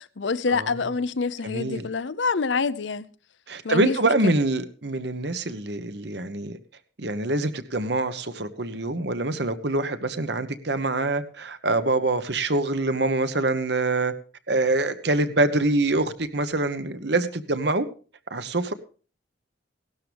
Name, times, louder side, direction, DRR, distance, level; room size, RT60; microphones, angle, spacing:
voice 1, 0.0-3.1 3.6-4.0 4.2-4.3, left 4 dB, 80° left, 0.7 m, -26 dB
voice 2, 1.4-1.9 3.5-6.6 7.0-14.1 14.5-17.9 18.3-18.7, right 2 dB, 60° right, 1.2 m, -25 dB
17.0 x 12.5 x 3.5 m
head